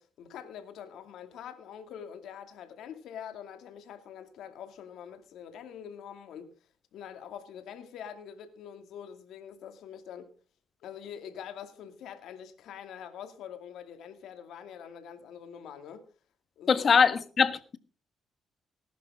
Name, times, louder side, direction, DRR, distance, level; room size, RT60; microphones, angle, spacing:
voice 1, 0.0-6.5 6.9-10.3 10.8-16.1 16.6-16.9, left 8 dB, 80° left, 2.4 m, -45 dB
voice 2, 16.7-17.8, left 6 dB, 45° left, 1.5 m, -23 dB
19.0 x 11.0 x 3.7 m
cardioid pair, 90°, 0 cm